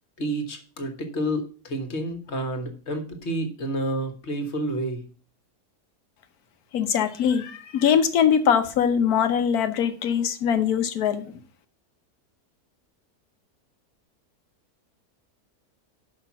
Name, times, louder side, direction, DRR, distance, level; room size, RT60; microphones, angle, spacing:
voice 1, 0.2-5.0, right 1 dB, 45° left, 1.6 m, -29 dB
voice 2, 6.7-11.4, left 8 dB, 70° left, 1.3 m, -22 dB
5.9 x 5.7 x 7.0 m
omnidirectional pair, 1.7 m